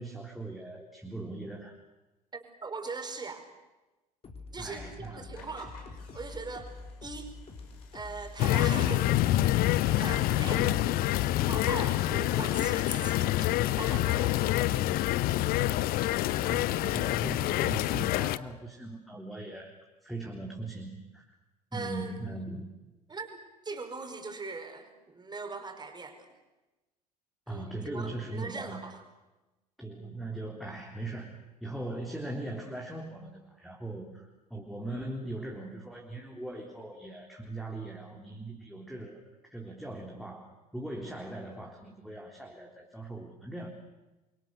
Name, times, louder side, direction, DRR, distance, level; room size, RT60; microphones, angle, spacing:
voice 1, 0.0-1.8 4.6-5.3 16.4-19.7 20.0-21.3 21.7-22.7 27.5-28.8 29.8-43.7, right 2 dB, ahead, 0 dB, 3.8 m, -40 dB
voice 2, 2.3-3.4 4.5-5.8 6.1-6.7 7.0-7.3 7.9-9.4 10.0-10.7 11.4-14.6 21.7-22.3 23.1-23.3 23.6-26.3 27.5-29.0, right 4 dB, 20° right, 6 dB, 5.1 m, -40 dB
sound 1, 4.2-10.7, left 3 dB, 30° left, 4.1 m, -46 dB
sound 2, 5.3-12.2, left 4 dB, 65° left, 7.4 m, -47 dB
sound 3, 8.4-18.4, left 15 dB, 45° left, 0.9 m, -27 dB
29.5 x 24.0 x 6.7 m, 1.1 s
figure-of-eight pair, 65°, 21 cm